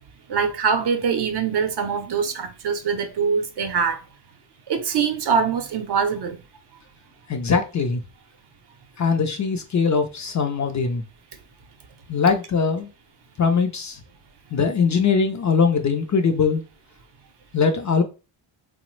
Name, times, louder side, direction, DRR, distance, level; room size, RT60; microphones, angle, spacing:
voice 1, 0.3-4.0 4.7-6.4, right 6 dB, 55° right, 0.6 m, -23 dB
voice 2, 7.3-8.0 9.0-11.0 12.1-12.9 13.4-14.0 14.5-16.6 17.5-18.0, left 5 dB, 40° left, 0.4 m, -21 dB
3.1 x 2.0 x 3.0 m
cardioid pair, 105°, 48 cm